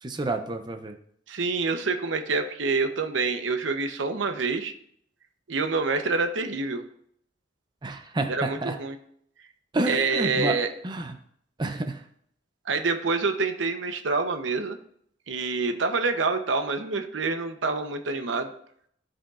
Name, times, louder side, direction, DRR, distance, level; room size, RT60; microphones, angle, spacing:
voice 1, 0.0-1.0 7.8-8.8 9.7-10.6 10.8-11.2 11.6-12.0, right 2 dB, 25° right, 6 dB, 0.5 m, -29 dB
voice 2, 1.3-4.7 5.5-6.8 8.3-9.0 9.8-10.7 12.7-14.8 15.3-18.5, right 4 dB, 80° right, 8 dB, 0.8 m, -27 dB
14.5 x 5.1 x 2.4 m, 0.66 s
head